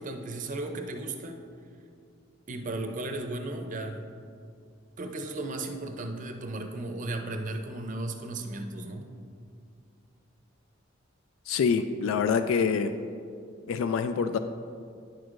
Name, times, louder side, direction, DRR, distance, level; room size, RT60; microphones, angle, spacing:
voice 1, 0.0-1.4 2.5-4.0 5.0-9.1, right 2 dB, 40° right, 4 dB, 0.6 m, -35 dB
voice 2, 11.5-12.9 13.7-14.4, left 6 dB, 90° left, 9 dB, 0.3 m, -26 dB
10.0 x 6.2 x 2.5 m, 2.3 s
head